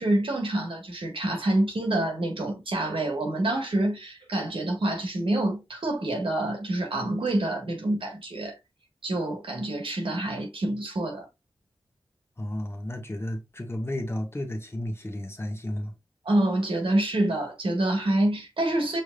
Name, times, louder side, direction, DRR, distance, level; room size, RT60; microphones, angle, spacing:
voice 1, 0.0-8.6 9.0-11.3 16.2-19.0, right 1 dB, 70° right, 1.6 m, -27 dB
voice 2, 12.4-15.9, left 1 dB, 25° left, 1.2 m, -33 dB
5.4 x 3.4 x 2.4 m
cardioid pair, 50°, 9 cm